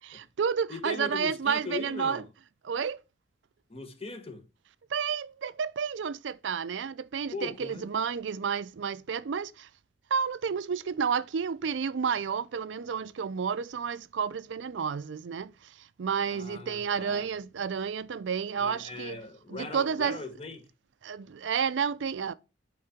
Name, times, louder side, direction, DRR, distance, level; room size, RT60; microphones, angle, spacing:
voice 1, 0.0-2.2 2.6-3.0 4.9-9.7 10.1-19.2 19.5-20.2 21.0-22.3, right 6 dB, 85° right, 0.4 m, -31 dB
voice 2, 0.7-2.3 3.7-4.4 7.3-7.9 16.3-17.3 18.5-20.7, left 3 dB, 35° left, 1.3 m, -39 dB
8.5 x 3.8 x 4.4 m
head